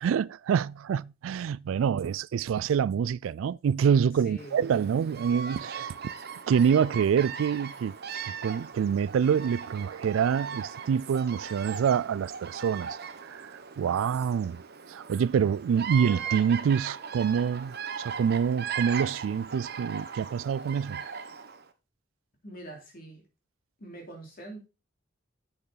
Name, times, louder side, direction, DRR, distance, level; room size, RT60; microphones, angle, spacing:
voice 1, 0.0-5.9 6.5-8.0 8.4-13.5 13.8-14.6 14.9-21.0, right 7 dB, 80° right, 0.3 m, -26 dB
voice 2, 4.2-4.6 22.4-23.2 23.8-24.7, right 1 dB, 50° left, 3.1 m, -44 dB
Bird vocalization bird call bird song, 4.4-21.6, right 6 dB, 55° right, 0.8 m, -39 dB
7.6 x 6.9 x 4.0 m
head